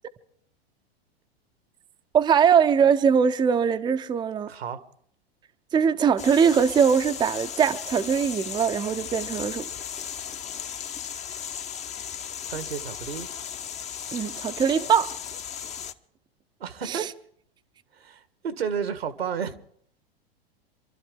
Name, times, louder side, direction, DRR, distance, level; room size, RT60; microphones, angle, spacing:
voice 1, 2.1-4.5 5.7-9.7 14.1-15.1 16.9-17.1, right 7 dB, 15° right, 0.6 m, -21 dB
voice 2, 4.5-4.8 12.5-13.3 16.6-17.1 17.9-19.5, right 7 dB, 80° right, 1.4 m, -32 dB
sound 1, 6.2-15.9, left 8 dB, 25° left, 0.8 m, -36 dB
26.5 x 12.5 x 3.7 m
figure-of-eight pair, 95°, 30 cm